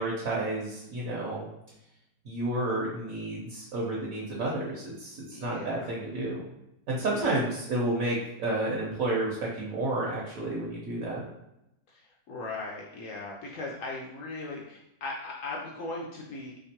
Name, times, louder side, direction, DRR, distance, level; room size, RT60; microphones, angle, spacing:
voice 1, 0.0-1.5 2.2-6.4 6.9-11.2, right 2 dB, 60° right, -5 dB, 1.1 m, -31 dB
voice 2, 5.3-5.9 7.1-7.3 11.9-16.6, left 2 dB, 70° left, -2 dB, 0.8 m, -38 dB
3.4 x 3.0 x 2.8 m, 0.86 s
omnidirectional pair, 1.8 m